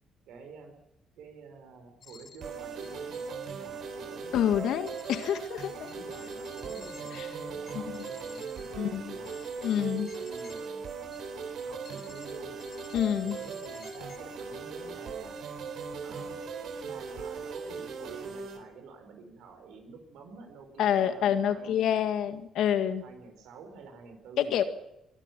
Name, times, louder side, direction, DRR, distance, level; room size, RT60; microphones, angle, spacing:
voice 1, 0.3-0.8 1.2-5.0 5.8-9.4 9.9-10.8 11.6-12.6 13.2-15.4 16.0-16.4 16.8-22.2 23.0-24.7, right 4 dB, 85° right, 7 dB, 4.7 m, -49 dB
sound 1, 2.0-2.5 2.8-3.5 4.9-5.3 5.6-10.6 11.1-11.5 11.8-12.3 12.6-14.2, left 6 dB, 60° left, 4.1 m, -52 dB
sound 2, 2.4-18.6, right 5 dB, 70° right, 4.0 m, -39 dB
voice 2, 4.3-5.9 7.1-7.3 7.8-8.0 8.8-9.2 9.6-10.1 12.9-13.4 20.8-23.0 24.4-24.6, left 9 dB, 80° left, 9 dB, 1.9 m, -27 dB
23.0 x 12.5 x 9.2 m, 0.82 s
cardioid pair, 90°, 0 cm